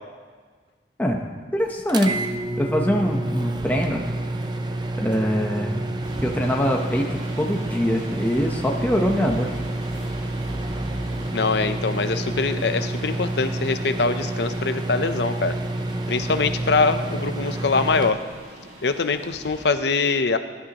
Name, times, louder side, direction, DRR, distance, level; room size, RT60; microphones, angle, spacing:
voice 1, 1.5-2.2 2.6-4.0 5.0-5.9 6.2-9.5, equal, 10° left, 1 dB, 0.9 m, -23 dB
sound 1, 1.9-18.1, right 2 dB, 25° right, 0.6 m, -29 dB
sound 2, 6.0-19.6, right 1 dB, 45° right, 3.1 m, -39 dB
voice 2, 11.3-15.6 16.1-18.2 18.8-20.4, left 4 dB, 70° left, 9 dB, 0.7 m, -23 dB
21.5 x 11.5 x 3.0 m, 1.5 s
head